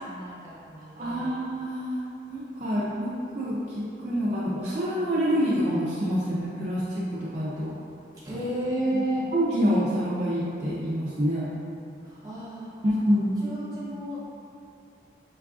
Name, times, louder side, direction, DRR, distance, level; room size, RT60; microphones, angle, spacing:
voice 1, 0.0-1.4 8.2-9.3 12.0-12.7 13.4-14.2, right 1 dB, 20° right, -10 dB, 0.9 m, -32 dB
voice 2, 1.0-2.0 2.3-3.1 3.4-7.7 9.3-11.5 13.1-13.4, equal, 40° right, -9 dB, 0.4 m, -27 dB
4.5 x 2.4 x 2.3 m, 2.5 s
head